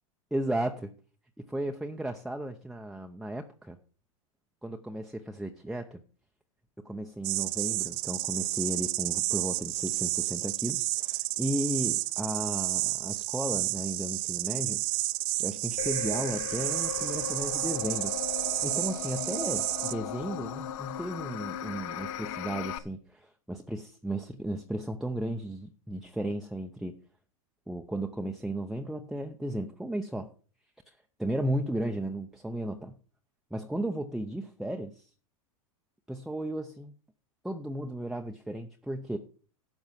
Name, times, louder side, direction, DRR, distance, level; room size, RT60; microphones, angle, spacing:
voice 1, 0.3-0.9 1.5-3.8 4.6-6.0 6.8-14.8 15.4-26.9 27.7-30.3 31.2-33.0 33.5-35.1 36.1-36.9 37.4-39.2, right 1 dB, ahead, 3 dB, 0.7 m, -34 dB
sound 1, 7.2-19.9, right 21 dB, 50° right, 0.6 m, -31 dB
sound 2, 15.8-22.8, left 10 dB, 70° left, 1.0 m, -37 dB
12.0 x 7.1 x 5.8 m, 0.40 s
hypercardioid pair, 120°, 18 cm